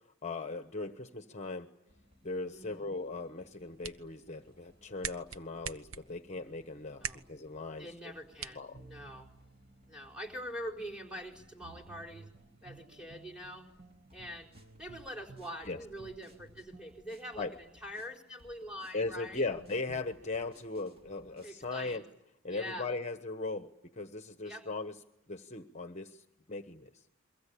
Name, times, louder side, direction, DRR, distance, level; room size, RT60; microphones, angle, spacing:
voice 1, 0.2-1.7 2.2-7.9 8.5-8.8 15.7-15.8 17.4-17.5 18.9-22.0 22.4-24.9 25.3-27.0, left 3 dB, 35° left, 8 dB, 1.1 m, -38 dB
sound 1, 1.9-21.7, equal, 30° right, 4.4 m, -65 dB
voice 2, 2.5-2.9 7.0-7.2 7.8-9.3 9.9-12.3 12.6-13.7 14.1-14.5 14.8-19.4 21.4-22.0 22.5-22.9 24.4-24.7, equal, 5° right, 3 dB, 4.5 m, -44 dB
sound 2, 3.4-9.4, right 7 dB, 75° right, 1.0 m, -46 dB
sound 3, 8.7-18.1 19.6-20.0, right 3 dB, 50° right, 1.2 m, -57 dB
30.0 x 23.5 x 8.5 m, 0.81 s
head